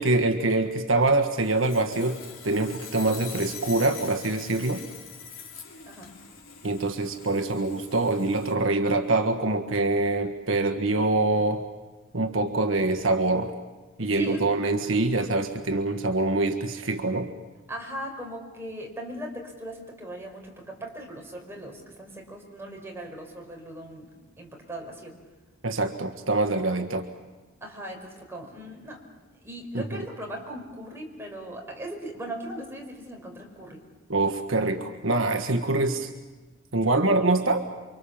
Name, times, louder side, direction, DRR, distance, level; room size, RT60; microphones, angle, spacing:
voice 1, 0.0-2.2 2.4-4.8 6.6-11.6 12.1-13.5 14.0-17.3 25.6-27.1 29.7-30.0 34.1-36.1 36.7-37.6, right 2 dB, 70° right, 6 dB, 1.5 m, -25 dB
Sawing, 1.4-8.5, left 6 dB, 75° left, 3.5 m, -43 dB
voice 2, 14.0-14.5 17.7-24.1 24.4-25.2 27.6-29.0 29.4-33.8, right 1 dB, 10° right, 0 dB, 5.3 m, -39 dB
29.5 x 24.5 x 7.2 m, 1.2 s
head